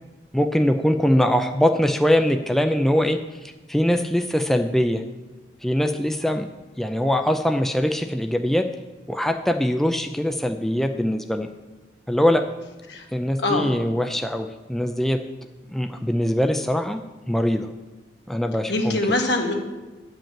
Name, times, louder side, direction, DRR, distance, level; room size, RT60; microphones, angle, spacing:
voice 1, 0.3-5.0 5.6-6.5 6.8-8.7 9.1-11.5 12.1-12.5 13.1-15.2 15.7-17.0 17.3-17.7 18.3-19.0, equal, ahead, 5 dB, 0.4 m, -22 dB
voice 2, 13.4-13.7 18.7-19.5, left 2 dB, 70° left, 2 dB, 1.5 m, -23 dB
9.9 x 5.3 x 7.4 m, 1.2 s
head